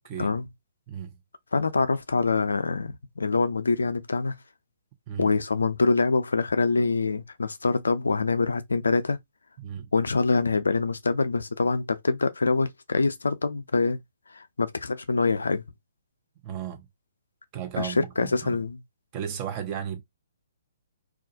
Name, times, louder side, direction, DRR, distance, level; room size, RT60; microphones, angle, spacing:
voice 1, 0.0-0.4 0.9-1.2 5.1-5.3 9.6-9.9 16.4-16.9 17.5-18.6 19.1-20.0, right 9 dB, 30° right, 0.6 m, -34 dB
voice 2, 1.5-4.4 5.2-9.2 9.9-14.0 14.3-15.6 17.8-18.8, left 4 dB, 75° left, 0.4 m, -25 dB
2.4 x 2.1 x 2.7 m
figure-of-eight pair, 130°, 0 cm